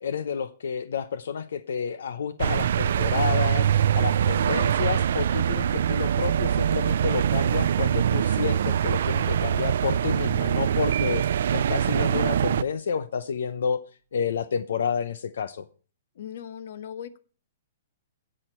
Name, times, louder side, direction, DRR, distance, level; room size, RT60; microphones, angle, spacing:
voice 1, 0.0-3.7 3.9-11.2 11.5-13.8 14.1-15.6, left 6 dB, 80° left, 13 dB, 0.7 m, -30 dB
sound 1, 2.4-12.6, right 9 dB, 65° right, 0.4 m, -23 dB
Piano, 10.9-11.9, right 10 dB, 85° right, 1.2 m, -37 dB
voice 2, 16.1-17.2, left 9 dB, 60° left, 14 dB, 1.0 m, -38 dB
16.5 x 6.5 x 4.4 m, 0.40 s
hypercardioid pair, 165°, 0 cm